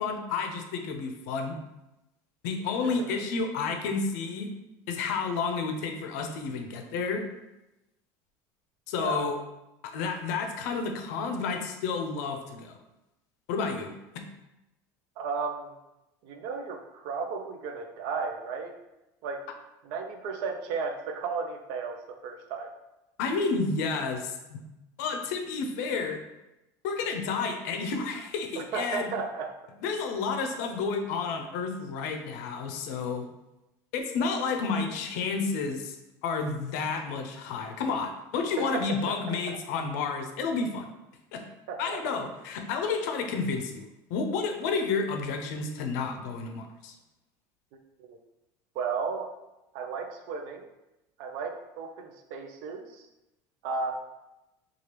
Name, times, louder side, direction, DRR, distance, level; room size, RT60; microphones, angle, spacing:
voice 1, 0.0-1.6 2.4-4.5 4.9-7.2 8.9-9.4 9.8-12.7 13.5-14.2 23.2-24.6 25.0-26.2 26.8-29.1 29.8-33.3 33.9-36.0 36.2-40.9 41.3-41.4 41.8-47.0, left 4 dB, 85° left, 4 dB, 0.5 m, -31 dB
voice 2, 2.8-3.2 9.0-9.2 15.2-15.7 16.2-18.7 19.2-19.5 19.8-22.7 28.6-29.5 39.1-39.3 41.7-42.0 48.0-48.2 48.8-49.3 49.7-50.7 51.2-53.1 53.6-53.9, right 5 dB, 65° right, 5 dB, 0.4 m, -34 dB
2.9 x 2.3 x 3.2 m, 0.96 s
cardioid pair, 160°, 9 cm